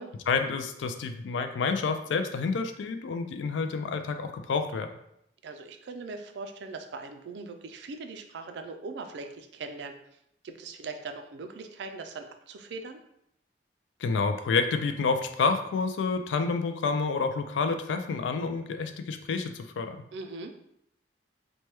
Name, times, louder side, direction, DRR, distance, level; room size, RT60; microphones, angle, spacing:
voice 1, 0.3-4.9 14.0-20.0, left 4 dB, 80° left, 7 dB, 0.3 m, -29 dB
voice 2, 5.4-10.0 10.4-13.0 20.1-20.5, right 3 dB, 70° right, 6 dB, 0.3 m, -40 dB
3.2 x 2.2 x 2.9 m, 0.77 s
head